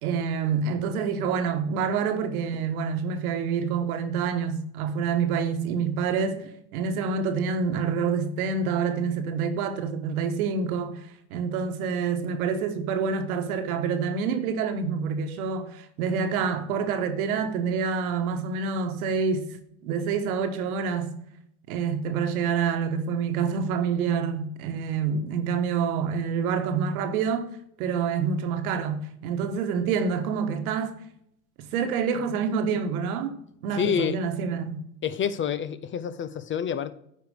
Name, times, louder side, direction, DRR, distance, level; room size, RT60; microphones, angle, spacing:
voice 1, 0.0-11.0 11.3-19.5 19.8-21.1 21.7-27.5 27.8-30.9 31.6-33.4 33.6-34.8, right 6 dB, 75° right, 1.4 m, -27 dB
voice 2, 33.8-34.2 35.0-36.9, left 8 dB, 30° left, 0.5 m, -28 dB
9.3 x 5.1 x 5.0 m
hypercardioid pair, 90°, 44 cm